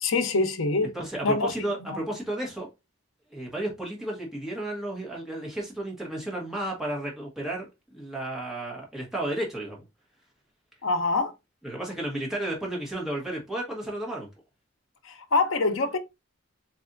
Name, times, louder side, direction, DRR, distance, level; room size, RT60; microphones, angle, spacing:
voice 1, 0.0-0.9 1.2-1.6 1.9-2.0 10.8-11.3 15.0-16.0, left 3 dB, 65° left, 0.7 m, -25 dB
voice 2, 0.9-2.7 3.3-9.8 11.6-14.3, right 1 dB, ahead, 1.3 m, -33 dB
4.1 x 3.3 x 2.6 m
head